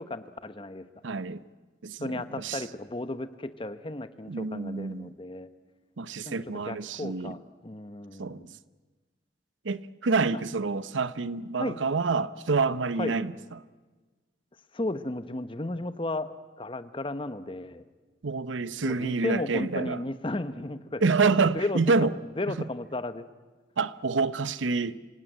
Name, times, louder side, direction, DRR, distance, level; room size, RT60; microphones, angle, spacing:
voice 1, 0.0-0.9 2.0-5.5 6.2-8.6 11.6-11.8 13.0-13.2 14.7-16.3 16.6-17.8 18.8-21.1 21.4-23.2, left 2 dB, 30° left, 0.9 m, -34 dB
voice 2, 1.0-1.4 1.8-2.6 4.3-5.1 6.0-7.4 8.2-8.5 9.6-13.3 18.2-20.0 21.0-22.1 22.5-22.6 23.8-25.0, right 4 dB, 90° right, 0.7 m, -27 dB
26.5 x 17.5 x 9.0 m
head